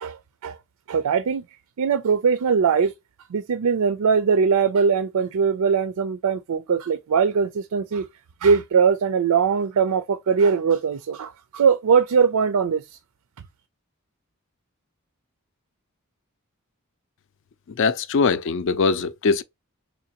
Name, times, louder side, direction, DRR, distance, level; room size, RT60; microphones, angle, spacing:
voice 1, 0.0-0.6 0.9-1.4 1.8-2.9 3.3-8.1 8.4-12.8, right 6 dB, 90° right, 0.4 m, -21 dB
voice 2, 17.8-19.4, left 4 dB, 55° left, 0.4 m, -21 dB
3.8 x 2.8 x 2.9 m
head